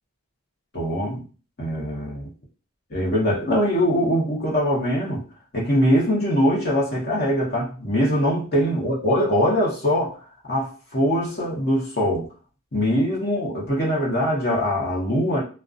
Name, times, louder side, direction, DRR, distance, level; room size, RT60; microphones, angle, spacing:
voice 1, 0.7-1.2 1.6-2.3 2.9-5.2 5.5-10.2 10.5-12.3 12.7-15.4, equal, 45° left, -3 dB, 0.9 m, -22 dB
2.4 x 2.2 x 2.5 m, 0.37 s
head